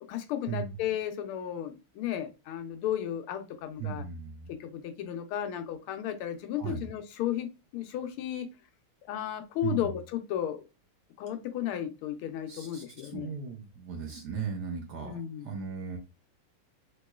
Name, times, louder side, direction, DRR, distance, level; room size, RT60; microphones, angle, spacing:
voice 1, 0.1-4.0 4.5-8.5 9.1-10.6 11.2-13.4 15.0-15.6, left 10 dB, 85° left, 7 dB, 1.5 m, -34 dB
voice 2, 3.8-4.5 6.6-6.9 9.6-9.9 12.5-16.0, right 6 dB, 65° right, 2 dB, 1.1 m, -37 dB
3.5 x 3.0 x 2.3 m, 0.27 s
omnidirectional pair, 2.3 m